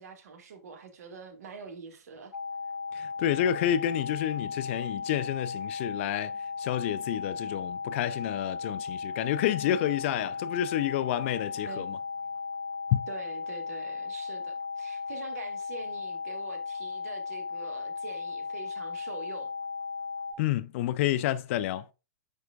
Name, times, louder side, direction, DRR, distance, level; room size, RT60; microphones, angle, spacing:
voice 1, 0.0-2.4 11.7-11.9 13.1-19.5, right 4 dB, 55° right, 1.9 m, -45 dB
sound 1, 2.3-20.3, left 5 dB, 80° left, 1.0 m, -36 dB
voice 2, 2.9-6.3 6.6-12.0 12.9-13.0 20.4-21.9, left 12 dB, 45° left, 0.5 m, -29 dB
9.6 x 4.5 x 2.4 m
figure-of-eight pair, 110°, 10 cm